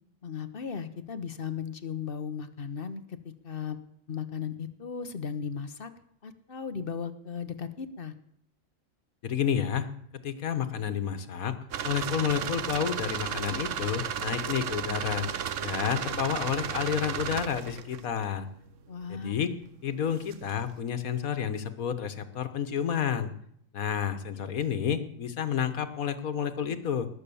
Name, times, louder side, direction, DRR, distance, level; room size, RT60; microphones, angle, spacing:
voice 1, 0.2-3.0 3.4-3.8 4.1-5.9 6.2-8.1 18.9-19.3, left 7 dB, 45° left, 10 dB, 1.2 m, -36 dB
voice 2, 9.2-9.9 10.2-11.5 11.8-15.3 15.6-18.5 19.1-19.5 19.8-23.3 23.7-27.1, left 8 dB, 85° left, 10 dB, 1.6 m, -30 dB
sound 1, 11.7-18.3 20.0-20.6, right 8 dB, 65° right, 1.1 m, -34 dB
19.5 x 7.4 x 7.0 m, 0.69 s
omnidirectional pair, 1.4 m